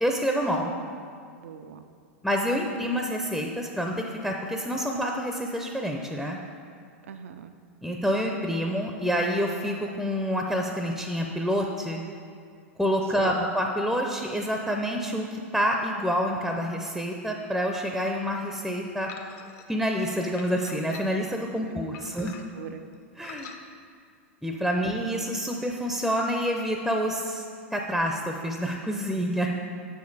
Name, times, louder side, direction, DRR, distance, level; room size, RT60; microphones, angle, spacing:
voice 1, 0.0-0.7 2.2-6.4 7.8-12.0 12.8-19.1 19.7-22.3 23.2-23.5 24.4-27.4 27.7-29.5, equal, ahead, 2 dB, 0.5 m, -27 dB
voice 2, 1.4-1.9 7.1-7.5 13.2-13.5 21.7-21.8 22.2-22.8, right 7 dB, 80° right, 8 dB, 0.3 m, -42 dB
sound 1, 19.1-19.7 20.4-21.3 21.9-22.7 23.2-23.6, left 7 dB, 45° left, 0.6 m, -45 dB
6.5 x 5.2 x 4.0 m, 2.3 s
hypercardioid pair, 100°, 7 cm